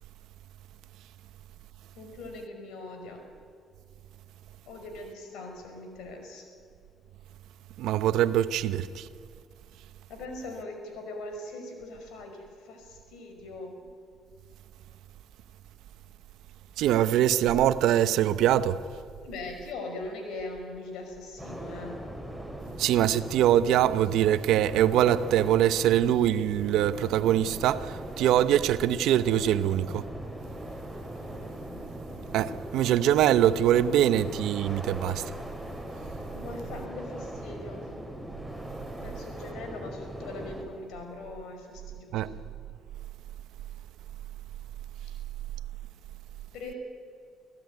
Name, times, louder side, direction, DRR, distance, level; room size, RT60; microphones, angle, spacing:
voice 1, 2.0-3.2 4.7-6.5 10.1-13.7 19.2-22.0 36.3-37.8 39.0-42.2 46.5-46.8, left 2 dB, 80° left, 5.4 m, -41 dB
voice 2, 7.8-9.1 16.8-18.8 22.8-30.1 32.3-35.3 42.1-42.3, right 11 dB, 80° right, 0.9 m, -23 dB
sound 1, 21.4-40.6, right 1 dB, 5° left, 5.7 m, -40 dB
25.5 x 15.5 x 9.5 m
supercardioid pair, 70°, 0 cm